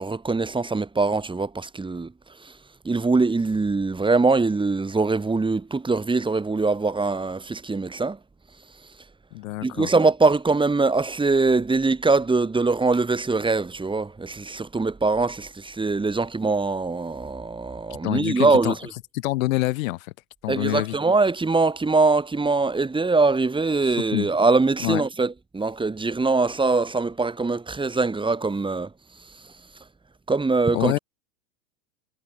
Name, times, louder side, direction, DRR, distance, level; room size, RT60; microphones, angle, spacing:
voice 1, 0.0-2.1 2.4-2.5 2.8-8.2 9.6-18.9 20.5-28.9 30.3-31.0, right 3 dB, 10° right, 4.9 m, -22 dB
voice 2, 9.3-9.9 18.0-18.7 19.1-20.1 20.4-21.0 24.1-24.3 24.8-25.0 30.7-31.0, left 19 dB, 60° left, 3.6 m, -26 dB
hypercardioid pair, 105°, 45 cm